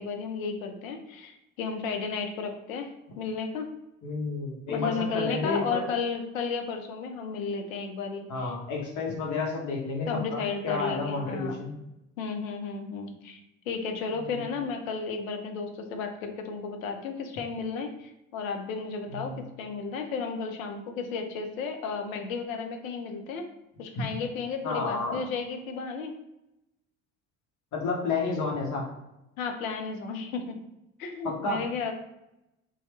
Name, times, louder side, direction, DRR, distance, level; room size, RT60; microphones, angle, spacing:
voice 1, 0.0-2.9 3.2-3.7 4.7-8.5 10.1-11.6 12.2-13.4 13.7-23.5 23.8-26.1 29.4-30.6 31.0-31.9, left 5 dB, 80° left, 5 dB, 0.6 m, -33 dB
voice 2, 4.0-5.9 8.3-11.7 14.3-14.4 19.1-19.4 23.9-24.0 24.6-25.2 27.7-28.8 31.2-31.6, left 3 dB, 45° left, -1 dB, 0.9 m, -31 dB
2.9 x 2.2 x 3.1 m, 0.90 s
figure-of-eight pair, 55°, 40 cm